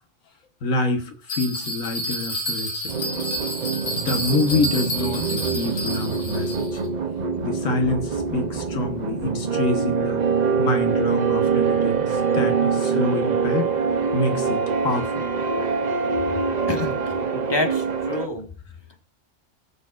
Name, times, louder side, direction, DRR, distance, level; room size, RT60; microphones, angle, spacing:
voice 1, 0.6-2.7 3.0-3.4 3.9-6.8 7.4-10.2 10.6-13.7 14.1-15.2, left 2 dB, 90° left, 6 dB, 1.6 m, -27 dB
Bell, 1.3-6.8, equal, 65° left, 2.5 m, -30 dB
sound 1, 2.9-18.3, right 5 dB, 45° right, 0.7 m, -24 dB
voice 2, 17.3-18.5, left 2 dB, 20° left, 4 dB, 1.3 m, -27 dB
21.0 x 7.0 x 2.4 m, 0.38 s
omnidirectional pair, 1.3 m